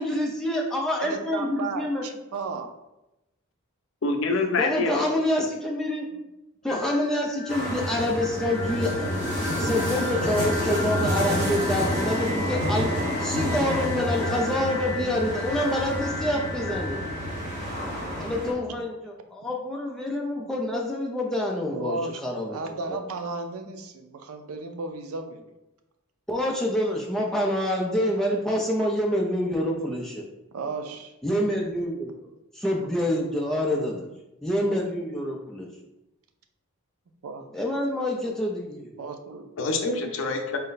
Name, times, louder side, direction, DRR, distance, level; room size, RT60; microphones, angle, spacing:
voice 1, 0.0-2.0 4.6-6.1 6.6-9.2 9.5-12.9 13.2-17.0 18.2-22.6 22.9-23.0 26.3-30.2 31.2-32.1 32.5-34.1 34.4-35.7 37.5-39.0, left 1 dB, ahead, -2 dB, 0.4 m, -27 dB
voice 2, 1.0-2.7 17.2-18.3 21.7-25.4 30.5-31.1 32.8-32.9 37.2-37.4 39.0-39.5, right 3 dB, 85° right, 6 dB, 0.5 m, -35 dB
voice 3, 4.0-5.0 39.6-40.6, left 3 dB, 65° left, 4 dB, 0.5 m, -26 dB
sound 1, 6.6-18.5, left 2 dB, 40° left, 1.1 m, -37 dB
sound 2, 7.5-18.5, equal, 50° right, 1.1 m, -29 dB
4.1 x 2.1 x 3.9 m, 0.95 s
head